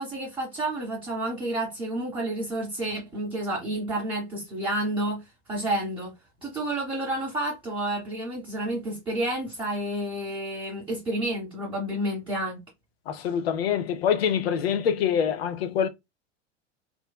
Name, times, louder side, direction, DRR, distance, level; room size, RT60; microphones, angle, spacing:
voice 1, 0.0-6.1 6.4-12.6, right 1 dB, 15° right, 0.8 m, -30 dB
voice 2, 13.1-15.9, left 8 dB, 60° left, 0.5 m, -25 dB
2.5 x 2.2 x 2.2 m
figure-of-eight pair, 85°, 36 cm